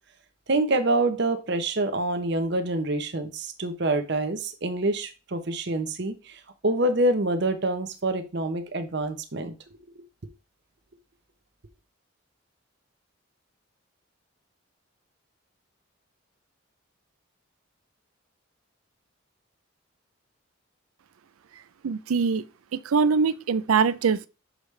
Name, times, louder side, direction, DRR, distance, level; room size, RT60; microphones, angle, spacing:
voice 1, 0.5-9.5, right 2 dB, 55° right, 0.8 m, -26 dB
voice 2, 21.8-22.4 22.9-24.3, right 5 dB, 90° right, 0.4 m, -22 dB
6.4 x 5.0 x 3.2 m
head